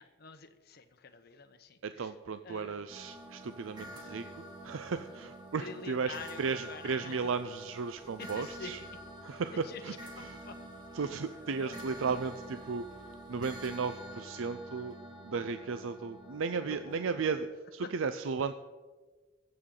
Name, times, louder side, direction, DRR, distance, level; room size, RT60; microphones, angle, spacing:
voice 1, 0.0-2.1 2.4-2.8 5.6-7.2 8.2-8.7 9.3-10.6 11.0-11.1 11.6-12.0 16.6-17.2 17.8-17.9, left 4 dB, 50° left, 8 dB, 0.9 m, -47 dB
voice 2, 1.8-8.8 9.2-9.9 10.3-10.4 10.9-12.8 13.3-14.9 15.2-18.5, right 5 dB, 80° right, 10 dB, 0.5 m, -35 dB
sound 1, 2.9-17.4, right 1 dB, 20° right, 2.0 m, -48 dB
22.5 x 7.7 x 3.8 m, 1.3 s
head